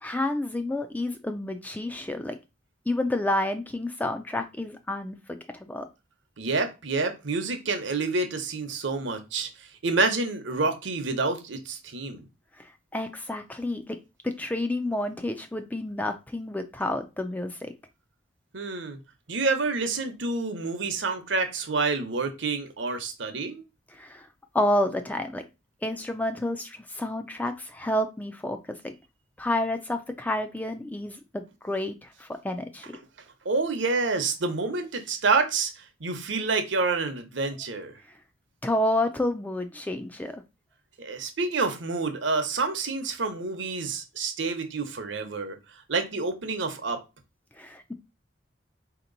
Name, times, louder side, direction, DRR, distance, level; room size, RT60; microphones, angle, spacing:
voice 1, 0.0-2.4 2.9-5.9 12.6-14.0 14.2-17.7 23.9-24.3 24.5-25.4 25.8-28.9 29.4-33.0 38.6-40.4 47.6-47.9, left 1 dB, 10° left, 0.3 m, -30 dB
voice 2, 6.4-12.3 18.5-19.0 19.3-23.6 33.4-37.9 41.0-45.6 45.9-47.0, right 3 dB, 70° right, 0.8 m, -28 dB
4.3 x 2.9 x 3.9 m
head